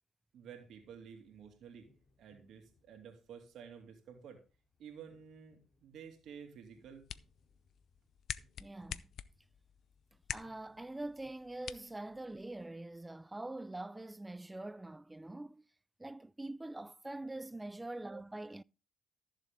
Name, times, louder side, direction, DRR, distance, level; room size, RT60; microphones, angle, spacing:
voice 1, 0.3-1.9 2.2-4.4 4.8-7.0 18.1-18.2, right 7 dB, 75° right, 2.6 m, -52 dB
sound 1, 0.5-11.3, left 2 dB, 45° left, 3.5 m, -73 dB
sound 2, 6.7-12.7, left 9 dB, 65° left, 0.5 m, -48 dB
voice 2, 8.6-9.0 10.3-15.7 16.0-18.6, right 2 dB, 15° right, 0.4 m, -44 dB
13.5 x 7.3 x 3.6 m
cardioid pair, 90°, 0 cm